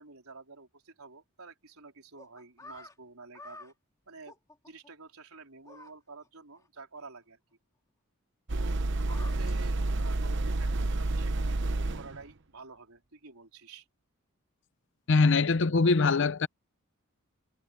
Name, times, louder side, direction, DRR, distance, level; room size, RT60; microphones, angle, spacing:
voice 1, 0.0-3.7 4.1-4.4 4.6-7.4 8.5-13.9, right 3 dB, 90° right, 4.0 m, -50 dB
sound 1, 2.2-2.9 3.3-3.7 4.3-4.9 5.7-5.9 6.2-6.3 6.6-6.7 7.0-7.1 8.8-9.6, left 2 dB, 15° left, 2.4 m, -49 dB
sound 2, 8.5-12.2, right 2 dB, 55° right, 0.9 m, -29 dB
voice 2, 15.1-16.5, left 4 dB, 60° left, 0.6 m, -23 dB
head